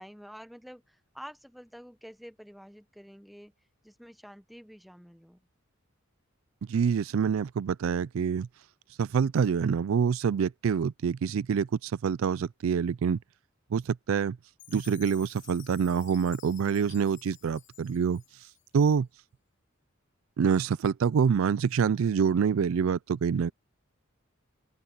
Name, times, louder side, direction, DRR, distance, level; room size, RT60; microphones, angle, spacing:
voice 1, 0.0-3.5 3.8-5.4, equal, ahead, 1.0 m, -48 dB
voice 2, 6.7-8.5 9.0-13.2 13.7-14.4 14.7-18.2 18.7-19.1 20.4-23.5, right 6 dB, 75° right, 0.4 m, -26 dB
Chime, 14.6-18.8, left 14 dB, 60° left, 3.0 m, -52 dB
open air
head